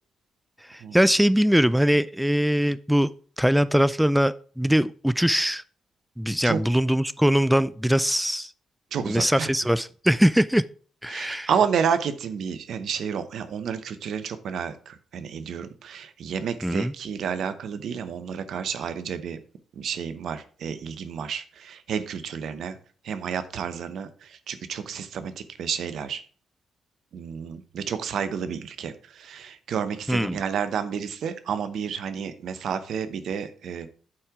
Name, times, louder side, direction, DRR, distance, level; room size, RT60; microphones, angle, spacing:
voice 1, 0.7-3.1 3.4-5.6 6.2-8.5 9.1-10.6 11.0-11.5 16.6-16.9 30.1-30.4, equal, 5° right, 16 dB, 0.4 m, -22 dB
voice 2, 8.9-9.5 11.1-19.4 19.8-22.8 23.0-26.2 27.1-33.9, right 7 dB, 65° right, 11 dB, 0.8 m, -30 dB
8.6 x 4.5 x 4.9 m, 0.42 s
hypercardioid pair, 45°, 0 cm